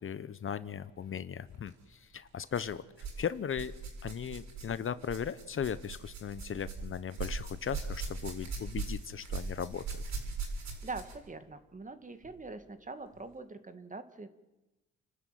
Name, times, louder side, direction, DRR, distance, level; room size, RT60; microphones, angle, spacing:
voice 1, 0.0-3.7 4.0-10.0, left 8 dB, 45° left, 15 dB, 0.9 m, -37 dB
sound 1, 1.5-1.7 2.5-3.2 3.5-11.3 12.2-12.3 13.1-13.2, right 4 dB, 65° right, 7.4 m, -40 dB
voice 2, 10.8-14.3, right 3 dB, 25° right, 9 dB, 2.3 m, -43 dB
29.5 x 12.5 x 9.4 m, 1.0 s
cardioid pair, 90°, 30 cm